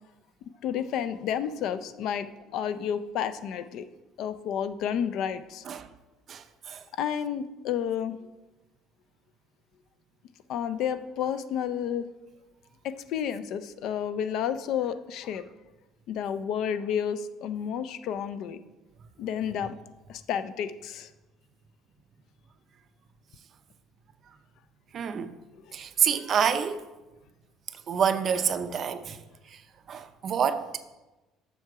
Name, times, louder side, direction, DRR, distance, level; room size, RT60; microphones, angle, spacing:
voice 1, 0.6-2.3 2.5-3.8 4.2-5.6 7.0-8.2 10.5-12.1 12.8-15.4 16.1-18.6 19.2-19.7 20.1-21.1, left 8 dB, 55° left, 0.4 m, -31 dB
voice 2, 6.3-6.8 24.9-25.3 25.7-26.9 27.7-29.2 29.5-29.6 29.9-30.8, right 7 dB, 35° right, 0.5 m, -28 dB
7.6 x 6.7 x 4.7 m
cardioid pair, 170°, 0 cm